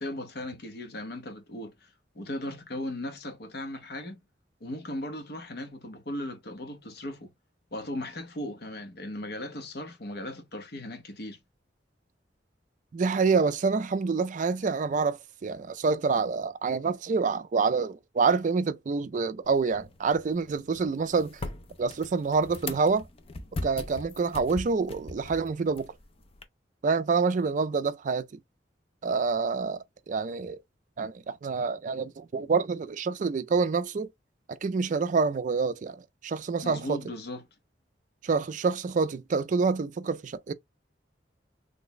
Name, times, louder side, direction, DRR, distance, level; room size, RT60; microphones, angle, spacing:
voice 1, 0.0-1.7 2.1-4.2 4.6-7.3 7.7-11.4 36.6-37.4, left 1 dB, 60° left, 0.8 m, -37 dB
voice 2, 12.9-21.4 21.8-23.1 23.6-25.9 26.8-28.3 29.0-30.6 31.0-34.1 34.5-37.0 38.2-40.5, right 4 dB, 45° right, 0.4 m, -27 dB
sound 1, 19.4-26.4, left 2 dB, 35° left, 0.5 m, -41 dB
3.3 x 2.1 x 3.8 m
head